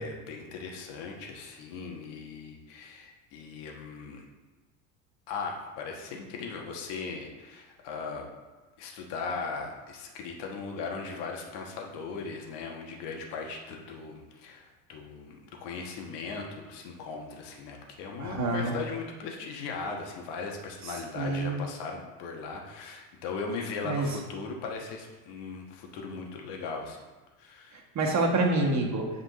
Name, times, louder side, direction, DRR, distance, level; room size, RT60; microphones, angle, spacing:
voice 1, 0.0-4.2 5.3-8.3 8.8-27.0 27.4-27.8, left 4 dB, 60° left, 1 dB, 1.4 m, -38 dB
voice 2, 18.2-18.7 20.8-21.6 23.8-24.1 27.9-29.1, right 2 dB, 35° right, 0 dB, 1.4 m, -27 dB
7.9 x 5.1 x 3.1 m, 1.2 s
hypercardioid pair, 85°, 45 cm